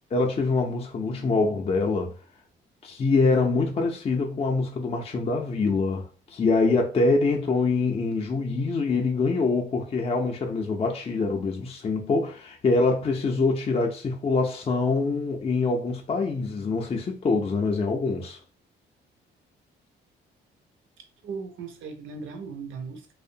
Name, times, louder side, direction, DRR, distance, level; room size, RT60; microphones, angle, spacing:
voice 1, 0.1-2.1 2.8-18.4, left 3 dB, 30° left, 0.4 m, -25 dB
voice 2, 21.0-23.1, right 5 dB, 80° right, 0.6 m, -38 dB
2.6 x 2.0 x 2.6 m
cardioid pair, 90°, 20 cm